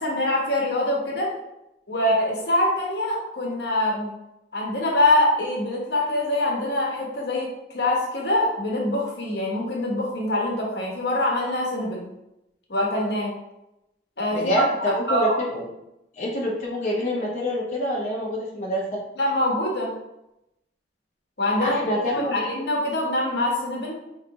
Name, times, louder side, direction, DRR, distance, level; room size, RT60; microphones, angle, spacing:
voice 1, 0.0-1.3 1.9-4.1 4.5-12.1 12.7-13.3 14.2-15.4 19.2-19.9 21.4-24.0, left 1 dB, 75° left, -2 dB, 1.2 m, -24 dB
voice 2, 14.3-15.6 16.2-18.8 21.6-22.4, left 1 dB, 45° left, -5 dB, 0.9 m, -26 dB
4.9 x 3.2 x 2.9 m, 0.87 s
head